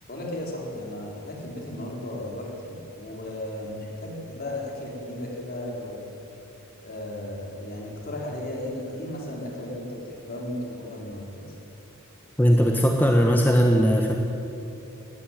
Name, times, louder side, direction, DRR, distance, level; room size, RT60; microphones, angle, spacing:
voice 1, 0.1-6.1 6.8-11.4, left 1 dB, 45° left, -1 dB, 4.5 m, -35 dB
voice 2, 12.4-14.2, equal, 10° left, 1 dB, 1.3 m, -19 dB
19.0 x 15.5 x 9.3 m, 2.9 s
head